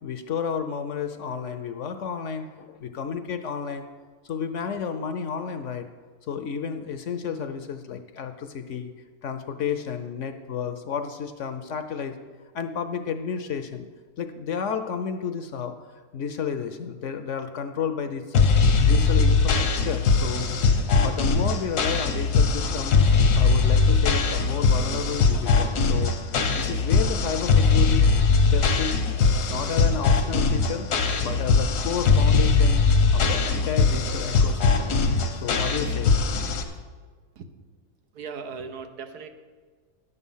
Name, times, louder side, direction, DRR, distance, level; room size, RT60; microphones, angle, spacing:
voice 1, 0.0-3.9 4.2-5.9 6.3-8.9 9.2-12.2 12.5-13.9 14.2-20.5 21.0-23.0 23.4-26.1 26.5-28.1 28.5-29.0 29.5-30.9 31.2-32.8 33.1-35.0 35.3-36.1, left 7 dB, 60° left, 8 dB, 0.9 m, -31 dB
sound 1, 18.3-36.6, left 4 dB, 80° left, 1.5 m, -21 dB
voice 2, 38.1-39.3, right 5 dB, 85° right, 7 dB, 1.4 m, -37 dB
11.0 x 8.2 x 5.6 m, 1.5 s
omnidirectional pair, 1.6 m